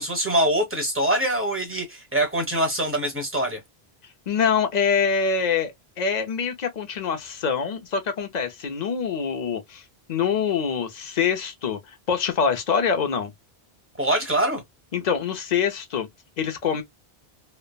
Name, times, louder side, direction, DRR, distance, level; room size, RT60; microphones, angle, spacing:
voice 1, 0.0-3.6 14.0-14.6, right 1 dB, 15° right, 0.9 m, -24 dB
voice 2, 4.3-9.8 10.1-13.3 14.9-16.1 16.4-16.8, left 6 dB, 50° left, 0.7 m, -25 dB
3.2 x 2.0 x 2.3 m
omnidirectional pair, 1.1 m